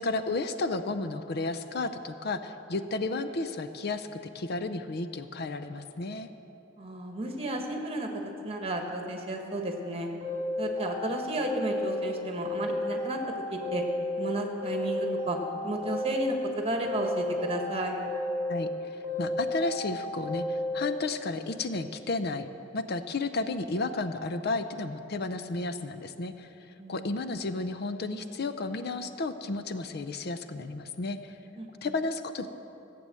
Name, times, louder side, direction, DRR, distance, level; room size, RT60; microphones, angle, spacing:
voice 1, 0.0-4.1 4.3-6.3 18.5-22.5 22.7-26.5 26.9-31.4 31.8-32.5, left 3 dB, 55° left, 10 dB, 0.6 m, -32 dB
voice 2, 6.8-10.1 10.6-13.2 13.5-13.8 14.2-15.4 15.6-17.9 26.8-27.2 31.6-31.7, right 1 dB, 30° right, 3 dB, 1.5 m, -33 dB
sound 1, 10.2-12.1 12.4-14.3 14.6-16.5 16.8-18.7 19.0-20.9, left 1 dB, 10° right, 3.8 m, -32 dB
15.0 x 7.8 x 7.6 m, 2.9 s
head